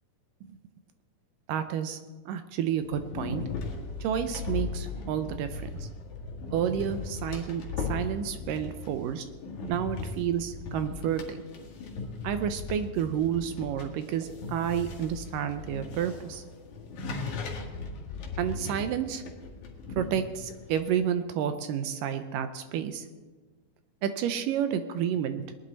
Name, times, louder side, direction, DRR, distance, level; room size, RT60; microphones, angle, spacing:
voice 1, 1.5-2.0 2.3-3.4 4.0-5.9 6.5-9.3 9.7-11.4 12.2-16.4 18.4-19.2 20.0-23.1 24.0-25.5, right 9 dB, 75° right, 9 dB, 2.2 m, -30 dB
sound 1, 2.8-20.9, left 4 dB, 60° left, 2.9 m, -38 dB
19.5 x 11.0 x 4.0 m, 1.4 s
omnidirectional pair, 4.2 m